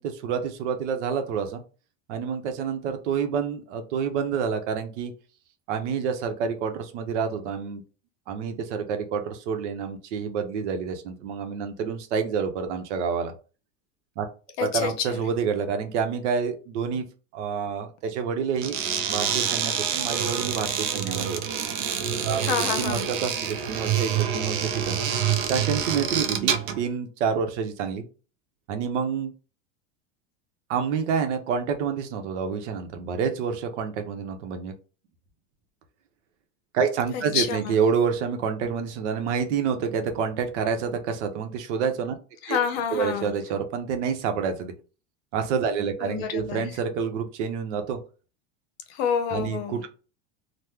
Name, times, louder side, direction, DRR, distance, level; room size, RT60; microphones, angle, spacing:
voice 1, 0.0-1.6 2.1-5.1 5.7-7.8 8.3-13.3 14.2-14.3 14.6-17.0 17.3-18.8 19.1-21.4 22.2-22.4 22.8-25.0 25.5-28.0 28.7-29.3 30.7-34.7 36.7-42.1 42.5-42.6 42.9-44.7 45.3-48.0 49.3-49.9, right 6 dB, 75° right, 6 dB, 0.8 m, -28 dB
voice 2, 14.6-15.2 22.4-23.1 37.1-37.8 42.4-43.3 46.0-46.7 48.9-49.8, left 7 dB, 55° left, 7 dB, 0.7 m, -28 dB
sound 1, 18.6-26.8, right 8 dB, 50° right, 0.4 m, -27 dB
3.0 x 2.1 x 3.4 m, 0.35 s
supercardioid pair, 170°, 36 cm